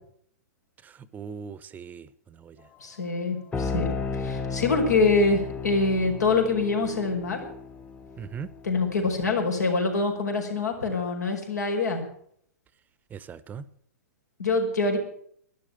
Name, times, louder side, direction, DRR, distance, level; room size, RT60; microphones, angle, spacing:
voice 1, 0.8-2.1 2.4-2.6 8.2-8.5 13.1-13.6, right 6 dB, 20° right, 16 dB, 0.8 m, -39 dB
voice 2, 2.8-3.9 4.1-7.5 8.6-12.0 14.4-15.0, left 3 dB, 90° left, 2 dB, 5.0 m, -25 dB
sound 1, 3.5-9.1, left 4 dB, 15° left, 0.9 m, -34 dB
12.5 x 11.0 x 9.0 m, 0.66 s
hypercardioid pair, 120°, 9 cm